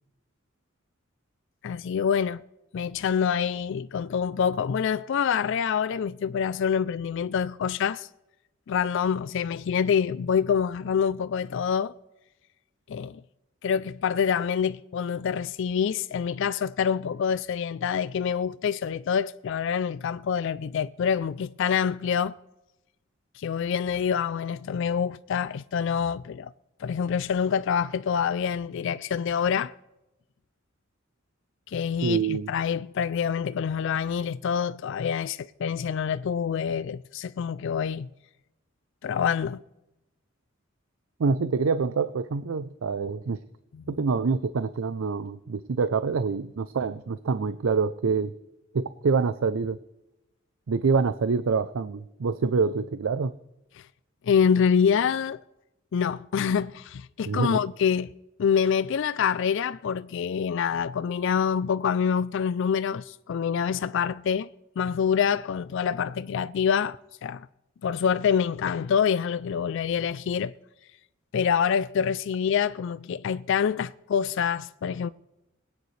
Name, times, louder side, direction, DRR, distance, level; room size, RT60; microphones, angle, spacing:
voice 1, 1.6-2.4 2.7-8.1 8.7-11.9 12.9-13.2 13.6-22.3 23.4-26.5 26.8-29.7 31.7-38.1 39.0-39.6 43.7-44.0 53.8-53.9 54.2-55.4 55.9-58.1 58.4-64.5 64.8-67.5 67.8-70.5 71.3-75.1, left 7 dB, 65° left, 0.4 m, -26 dB
voice 2, 32.0-32.5 41.2-43.4 43.9-48.3 48.7-49.8 50.7-53.3 57.3-57.6, right 5 dB, 85° right, 0.5 m, -26 dB
21.0 x 9.4 x 3.2 m
head